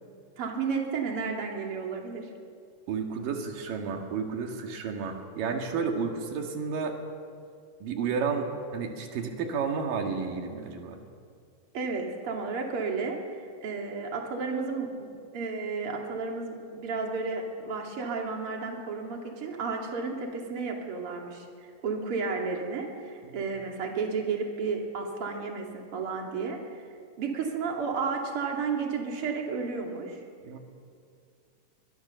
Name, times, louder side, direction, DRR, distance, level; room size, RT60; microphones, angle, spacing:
voice 1, 0.4-2.3 11.7-26.6 27.2-30.2, right 4 dB, 45° right, 1 dB, 3.3 m, -32 dB
voice 2, 2.9-7.0 7.8-11.0 23.2-23.4 30.4-30.6, right 5 dB, 90° right, 3 dB, 3.5 m, -31 dB
24.5 x 21.5 x 6.9 m, 2.3 s
omnidirectional pair, 3.8 m